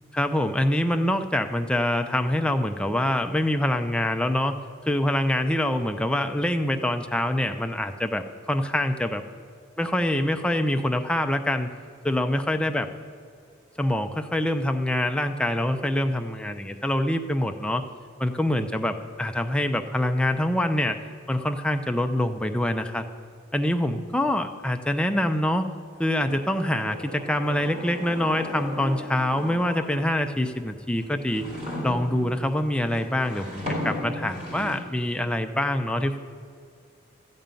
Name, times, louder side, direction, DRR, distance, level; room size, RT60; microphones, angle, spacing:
voice 1, 0.1-4.6 4.9-9.2 9.8-11.7 12.0-12.9 13.8-17.8 18.2-21.0 21.3-23.0 23.5-25.7 26.0-31.5 31.8-36.2, left 1 dB, 5° left, 6 dB, 0.5 m, -25 dB
sound 1, 25.9-30.3 30.9-34.8, left 1 dB, 35° right, 2.8 m, -36 dB
14.0 x 5.4 x 8.9 m, 2.3 s
head